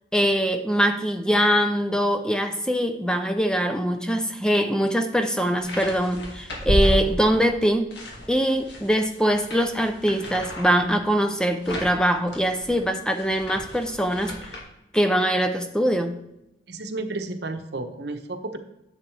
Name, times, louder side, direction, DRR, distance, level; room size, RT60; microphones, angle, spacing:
voice 1, 0.1-7.9 8.3-14.6 14.9-16.2, equal, 5° left, 7 dB, 0.4 m, -23 dB
sound 1, 5.6-7.5 7.9-14.6, equal, 75° left, 1.9 m, -31 dB
voice 2, 16.7-18.6, right 2 dB, 65° right, 7 dB, 0.9 m, -32 dB
10.5 x 7.6 x 3.3 m, 0.89 s
head